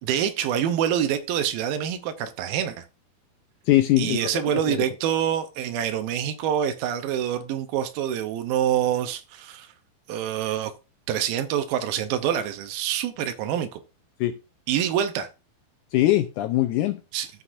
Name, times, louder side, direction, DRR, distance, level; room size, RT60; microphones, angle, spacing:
voice 1, 0.0-2.8 4.0-9.7 10.1-10.7 11.1-13.8 14.7-15.3 17.1-17.3, right 10 dB, 85° right, 2.5 m, -26 dB
voice 2, 3.7-4.8 14.2-14.3 15.9-17.0, left 15 dB, 90° left, 1.8 m, -22 dB
14.0 x 5.9 x 2.5 m
omnidirectional pair, 4.1 m